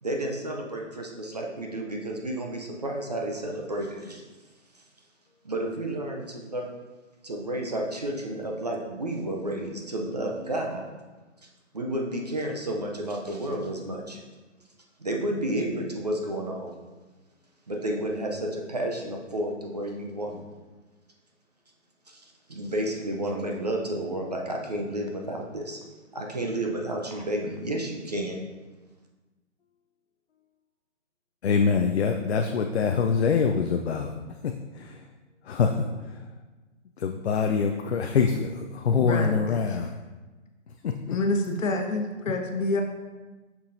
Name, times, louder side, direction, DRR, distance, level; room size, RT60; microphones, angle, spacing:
voice 1, 0.0-4.2 5.4-6.7 7.2-10.9 11.7-14.2 15.0-16.7 17.7-20.4 22.1-25.8 26.1-28.4, right 1 dB, 35° right, 1 dB, 0.5 m, -31 dB
voice 2, 31.4-35.1 35.4-36.3 37.0-39.9 40.7-41.2 42.3-42.4, left 5 dB, 55° left, 4 dB, 0.5 m, -25 dB
voice 3, 39.0-39.4 41.1-42.8, left 2 dB, 80° left, 4 dB, 1.1 m, -27 dB
7.1 x 5.9 x 2.6 m, 1.2 s
hypercardioid pair, 170°, 38 cm